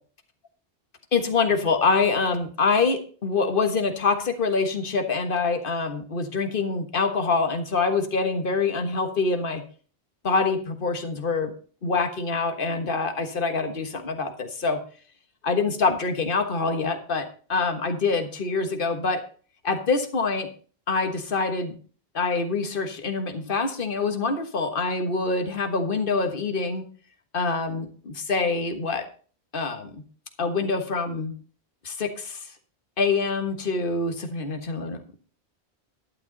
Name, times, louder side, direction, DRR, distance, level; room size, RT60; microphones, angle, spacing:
voice 1, 1.1-9.6 10.2-11.5 11.8-14.8 15.4-19.2 19.6-20.5 20.9-21.7 22.1-26.8 27.3-29.0 29.5-30.0 30.4-31.3 31.8-32.5 33.0-35.2, left 4 dB, 55° left, 7 dB, 1.6 m, -25 dB
11.5 x 9.9 x 3.9 m, 0.41 s
omnidirectional pair, 1.1 m